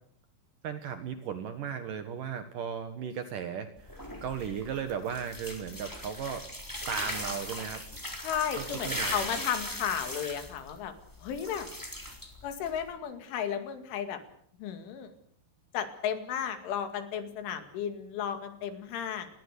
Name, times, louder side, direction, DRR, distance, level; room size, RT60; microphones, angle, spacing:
voice 1, 0.6-6.5 6.9-7.8 8.5-9.3, right 7 dB, 65° right, 9 dB, 2.3 m, -36 dB
sound 1, 3.8-12.9, left 1 dB, 5° left, 3.1 m, -39 dB
voice 2, 8.2-10.9 11.2-11.7 12.4-14.2 14.6-15.1 15.7-19.3, left 8 dB, 80° left, 8 dB, 4.7 m, -34 dB
28.0 x 20.5 x 6.8 m, 0.66 s
omnidirectional pair, 5.5 m